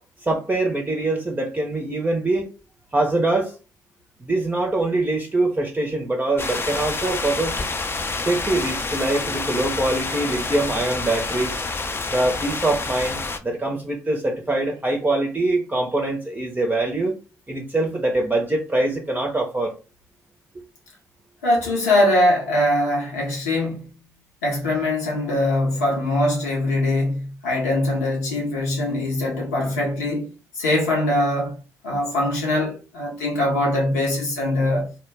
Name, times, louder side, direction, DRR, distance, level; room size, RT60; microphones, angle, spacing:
voice 1, 0.2-2.5 2.9-3.5 4.2-7.7 8.2-11.6 12.1-17.2 17.5-19.7, right 2 dB, 20° right, 0.6 m, -23 dB
sound 1, 6.4-13.4, left 3 dB, 25° left, 0.4 m, -28 dB
voice 2, 21.4-23.8 24.4-30.3 30.5-31.6 31.8-34.9, left 1 dB, 90° left, 0.8 m, -22 dB
2.1 x 2.1 x 3.3 m
hypercardioid pair, 45°, 9 cm